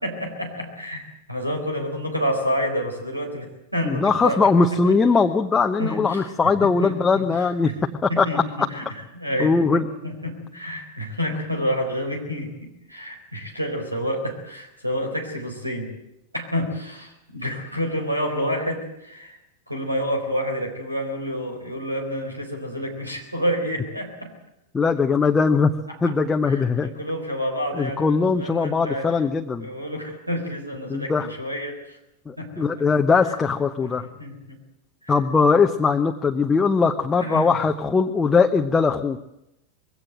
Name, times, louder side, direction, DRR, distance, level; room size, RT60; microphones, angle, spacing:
voice 1, 0.0-5.0 5.8-6.3 6.6-7.7 8.1-8.8 9.1-15.9 16.3-19.4 19.7-24.3 25.9-26.1 26.4-29.2 29.6-32.0 32.4-32.8 33.2-33.4 33.8-34.6 35.0-35.1 37.2-37.5, equal, 90° right, 4 dB, 4.1 m, -29 dB
voice 2, 3.9-7.7 8.0-8.4 9.4-9.9 24.7-25.7 26.0-26.9 27.7-29.7 30.9-31.3 32.3-34.1 35.1-39.2, left 4 dB, 15° left, 4 dB, 0.9 m, -20 dB
21.5 x 17.0 x 7.8 m, 0.85 s
figure-of-eight pair, 90°, 0 cm